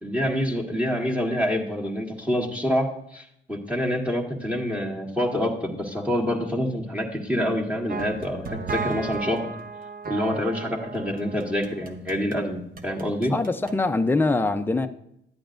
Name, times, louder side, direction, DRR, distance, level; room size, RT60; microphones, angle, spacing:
voice 1, 0.0-9.5 10.1-13.3, equal, 5° right, -2 dB, 1.7 m, -27 dB
sound 1, 7.9-12.4 12.8-13.8, right 4 dB, 45° right, 1.0 m, -35 dB
voice 2, 13.3-14.9, left 3 dB, 10° left, 7 dB, 0.6 m, -23 dB
11.5 x 8.4 x 2.6 m, 0.75 s
cardioid pair, 90°, 20 cm